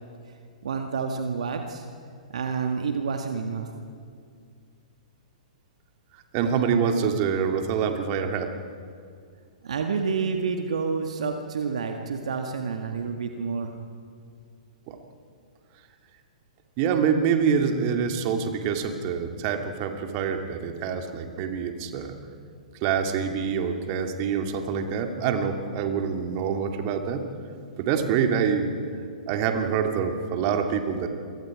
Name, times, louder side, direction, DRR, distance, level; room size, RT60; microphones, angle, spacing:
voice 1, 0.6-1.8 2.3-3.7 9.6-13.7, right 5 dB, 60° right, 4 dB, 1.8 m, -29 dB
voice 2, 6.3-8.5 14.9-15.0 16.8-22.2 22.8-27.2 27.8-28.7 29.3-31.1, right 7 dB, 35° right, 5 dB, 2.4 m, -26 dB
29.5 x 24.5 x 5.0 m, 2.2 s
figure-of-eight pair, 110°, 4 cm